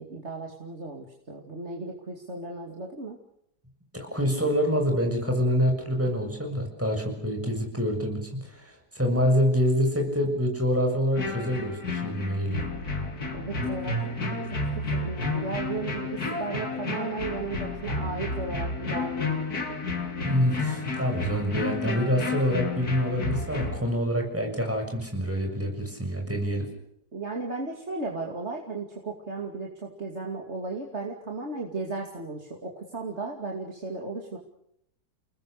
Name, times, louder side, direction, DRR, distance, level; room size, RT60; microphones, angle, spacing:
voice 1, 0.0-3.2 13.3-14.4 14.9-19.4 27.1-34.4, right 3 dB, 45° right, 0 dB, 3.0 m, -35 dB
voice 2, 3.9-12.7 20.2-26.7, equal, 10° right, 2 dB, 6.8 m, -26 dB
sound 1, 11.1-23.8, left 2 dB, 75° left, 3.4 m, -31 dB
30.0 x 20.0 x 6.7 m, 0.75 s
omnidirectional pair, 1.6 m